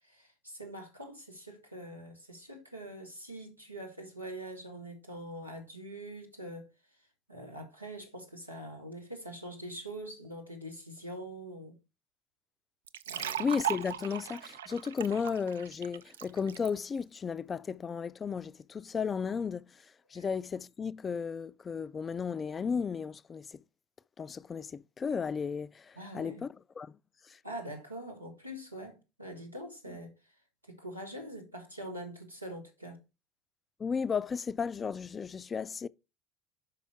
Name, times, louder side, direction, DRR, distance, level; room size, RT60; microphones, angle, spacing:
voice 1, 0.0-6.7 7.3-11.7 13.1-13.5 20.1-20.3 26.0-26.4 27.4-30.1 30.7-33.0, right 1 dB, 90° right, 1.5 m, -44 dB
sound 1, 12.9-16.7, right 10 dB, 75° right, 0.3 m, -38 dB
voice 2, 13.2-23.6 24.2-27.0 27.2-27.4 33.8-35.9, left 6 dB, 30° left, 0.4 m, -34 dB
5.5 x 5.3 x 4.4 m
figure-of-eight pair, 65°, 0 cm